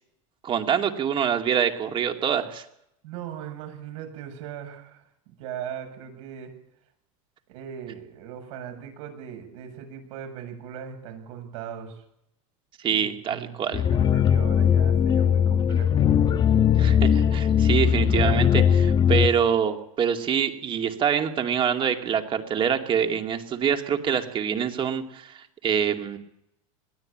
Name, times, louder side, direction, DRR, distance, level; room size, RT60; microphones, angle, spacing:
voice 1, 0.4-2.6 12.8-13.8 16.8-26.2, right 8 dB, 30° right, 5 dB, 2.5 m, -25 dB
voice 2, 3.0-6.5 7.5-12.0 12.9-16.0, right 8 dB, 70° right, 5 dB, 7.7 m, -39 dB
sound 1, 13.7-19.3, left 8 dB, 25° left, 1.1 m, -20 dB
21.5 x 16.0 x 8.9 m, 0.77 s
supercardioid pair, 135°, 17 cm